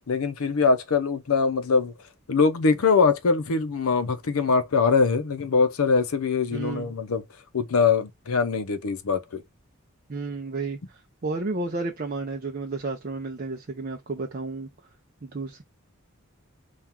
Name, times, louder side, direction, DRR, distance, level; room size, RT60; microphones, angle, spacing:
voice 1, 0.1-1.9 2.3-7.2 7.5-9.4, left 5 dB, 90° left, 0.6 m, -22 dB
voice 2, 6.5-6.9 10.1-14.7 15.2-15.6, right 3 dB, 40° right, 0.5 m, -32 dB
4.3 x 2.4 x 3.5 m
head